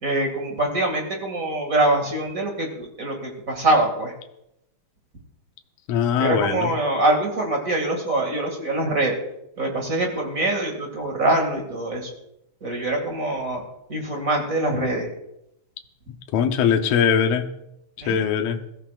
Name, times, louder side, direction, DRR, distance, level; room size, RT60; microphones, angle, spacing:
voice 1, 0.0-4.1 6.2-9.2 9.6-12.1 12.6-13.6 13.9-15.1 18.0-18.2, right 2 dB, 30° right, 1 dB, 2.3 m, -24 dB
voice 2, 5.9-6.7 16.3-17.5 18.1-18.6, left 7 dB, 70° left, 5 dB, 2.0 m, -21 dB
21.5 x 14.5 x 2.5 m, 0.81 s
omnidirectional pair, 3.3 m